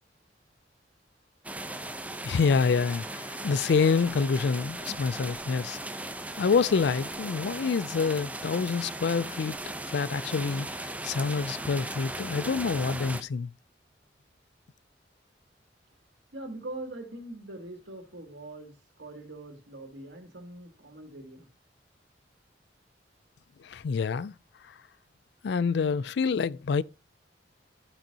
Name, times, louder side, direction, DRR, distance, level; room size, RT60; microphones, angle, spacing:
sound 1, 1.4-13.2, right 1 dB, 10° right, 0.7 m, -37 dB
voice 1, 2.2-5.8 6.4-9.6 9.9-13.5 23.6-24.3 25.4-26.8, left 5 dB, 65° left, 0.4 m, -27 dB
voice 2, 16.3-21.5, right 2 dB, 80° right, 2.6 m, -42 dB
13.0 x 6.1 x 2.8 m
head